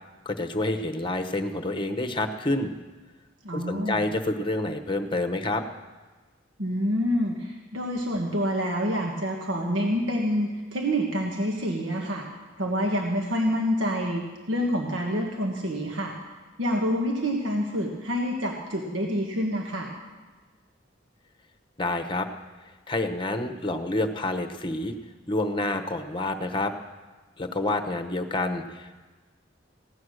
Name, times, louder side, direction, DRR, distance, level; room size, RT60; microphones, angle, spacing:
voice 1, 0.2-2.7 3.5-5.6 21.8-22.3 22.9-24.9 25.3-26.7 27.4-28.9, left 2 dB, 25° left, 6 dB, 1.0 m, -28 dB
voice 2, 3.4-4.0 6.6-12.2 12.6-16.2 16.6-19.9, equal, 80° right, 0 dB, 1.5 m, -27 dB
16.5 x 9.4 x 6.4 m, 1.3 s
head